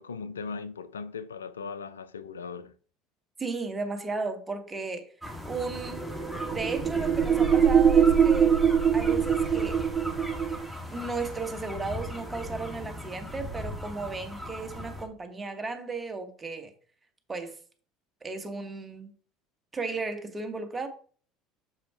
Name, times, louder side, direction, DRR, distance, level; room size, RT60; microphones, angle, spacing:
voice 1, 0.0-2.7, left 5 dB, 85° left, 0.4 m, -38 dB
voice 2, 3.4-5.1 5.4-6.1 6.5-8.6 8.9-9.8 10.9-16.7 17.3-17.6 18.2-19.1 19.7-20.9, right 4 dB, 20° right, 1.8 m, -34 dB
sound 1, 5.2-15.0, left 1 dB, 5° left, 2.6 m, -38 dB
sound 2, 5.7-10.7, right 7 dB, 40° right, 0.8 m, -23 dB
7.0 x 5.2 x 4.4 m
figure-of-eight pair, 65°, 0 cm